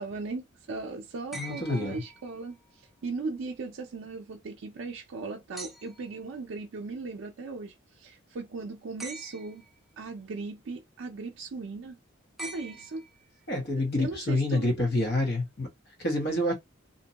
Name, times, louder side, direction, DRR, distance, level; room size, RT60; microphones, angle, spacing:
voice 1, 0.0-2.6 3.0-9.6 10.0-12.0 12.4-13.0 13.7-14.7 16.5-16.6, right 3 dB, 70° right, 0.4 m, -38 dB
voice 2, 1.3-2.0 13.5-15.7 16.0-16.5, left 1 dB, 50° left, 0.9 m, -27 dB
sound 1, 1.3-2.7 5.6-6.2 9.0-9.8 12.4-13.4 15.0-15.1, right 2 dB, ahead, 0.4 m, -44 dB
2.6 x 2.2 x 2.8 m
head